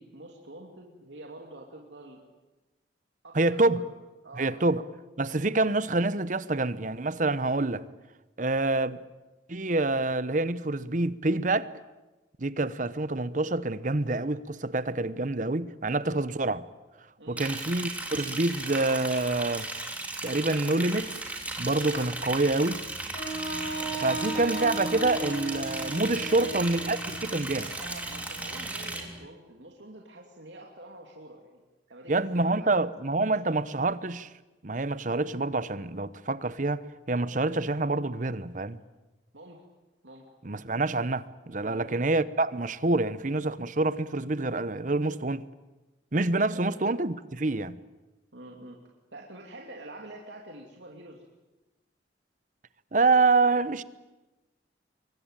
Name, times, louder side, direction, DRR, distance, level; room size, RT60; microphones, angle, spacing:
voice 1, 0.0-2.2 3.2-3.9 4.2-4.7 17.2-17.5 23.9-24.2 26.2-26.5 27.4-31.6 31.9-32.8 33.3-33.6 39.3-39.6 40.0-40.2 41.6-42.0 46.5-46.7 48.3-48.8 49.1-51.2, right 1 dB, 80° right, 2.8 m, -47 dB
voice 2, 3.3-3.9 4.4-4.8 5.2-7.8 8.4-9.0 9.5-11.7 12.4-16.6 17.3-19.7 20.2-21.1 21.6-22.8 24.0-27.6 32.1-34.3 34.6-38.8 40.4-45.4 46.1-47.8 52.9-53.8, right 2 dB, 45° right, 0.9 m, -27 dB
Liquid, 17.4-29.0, right 2 dB, 10° right, 3.4 m, -36 dB
Wind instrument woodwind instrument, 23.1-27.2, right 2 dB, 60° left, 7.8 m, -35 dB
sound 1, 23.3-29.3, equal, 10° left, 1.3 m, -46 dB
25.5 x 23.0 x 9.0 m
head